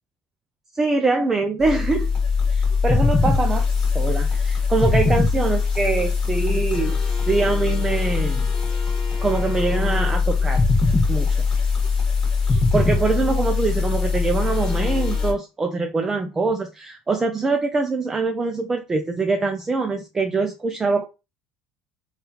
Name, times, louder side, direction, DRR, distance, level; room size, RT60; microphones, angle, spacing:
voice 1, 0.7-2.1 2.8-7.0 7.3-8.5 9.2-10.6 11.1-11.4 12.5-21.1, right 3 dB, 20° right, 0.4 m, -23 dB
sound 1, 1.6-15.3, left 4 dB, 25° left, 1.3 m, -21 dB
3.4 x 2.3 x 2.8 m
cardioid pair, 120°, 3 cm